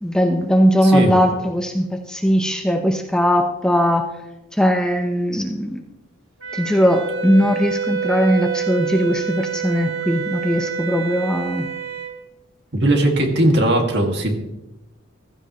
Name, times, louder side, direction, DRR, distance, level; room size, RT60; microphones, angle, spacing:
voice 1, 0.0-4.1 4.5-5.8 6.5-11.7, equal, 5° left, 3 dB, 0.9 m, -19 dB
Wind instrument woodwind instrument, 6.4-12.1, right 7 dB, 75° right, 2.1 m, -27 dB
voice 2, 12.7-14.3, right 1 dB, 55° right, 2 dB, 2.3 m, -18 dB
15.5 x 14.5 x 3.2 m, 0.94 s
head